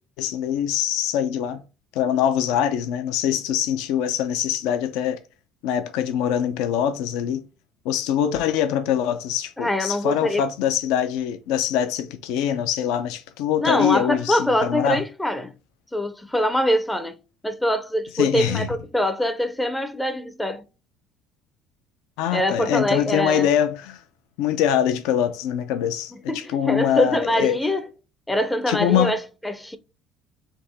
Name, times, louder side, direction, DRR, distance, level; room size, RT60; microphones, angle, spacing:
voice 1, 0.2-1.6 1.9-5.2 5.6-7.4 7.8-15.0 18.1-18.7 22.2-24.0 24.4-27.6 28.7-29.1, left 10 dB, 80° left, 0.5 m, -23 dB
voice 2, 9.6-10.5 13.6-15.5 15.9-17.2 17.4-20.6 22.3-23.5 26.3-27.9 28.3-29.8, left 1 dB, 5° left, 0.4 m, -24 dB
3.5 x 2.8 x 3.9 m
cardioid pair, 130°, 0 cm